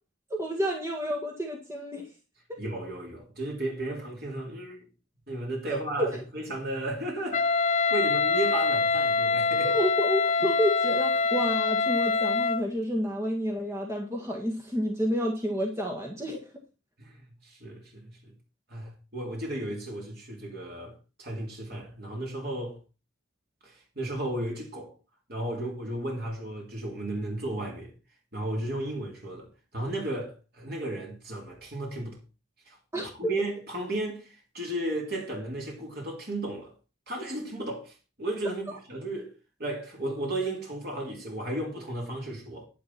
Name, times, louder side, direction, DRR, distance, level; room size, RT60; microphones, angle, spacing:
voice 1, 0.3-2.1 2.5-2.6 5.7-6.2 9.6-16.4 32.9-33.3, equal, 15° right, 1.7 m, -30 dB
voice 2, 2.6-4.9 5.3-7.5 7.9-9.7 17.0-17.2 17.4-18.3 18.7-20.9 21.2-22.8 23.6-24.9 25.3-27.9 28.3-32.2 32.7-32.8 33.0-36.7 37.1-39.3 39.6-42.7, right 1 dB, 50° right, 3.4 m, -34 dB
Wind instrument woodwind instrument, 7.3-12.7, left 4 dB, 35° left, 0.5 m, -25 dB
10.5 x 10.0 x 4.4 m
head